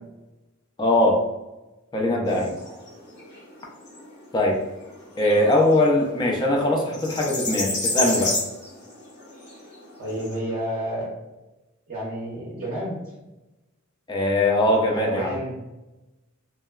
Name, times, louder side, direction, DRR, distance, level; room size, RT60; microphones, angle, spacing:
voice 1, 0.8-1.2 1.9-2.5 4.3-4.6 5.2-8.4 14.1-15.4, left 1 dB, 20° left, 0 dB, 0.3 m, -21 dB
voice 2, 2.1-2.8 9.3-11.1 11.9-13.0 14.7-15.6, right 1 dB, 40° right, -6 dB, 0.5 m, -31 dB
sound 1, 2.3-10.3, left 2 dB, 50° left, 0.7 m, -32 dB
2.9 x 2.1 x 2.2 m, 1.0 s
head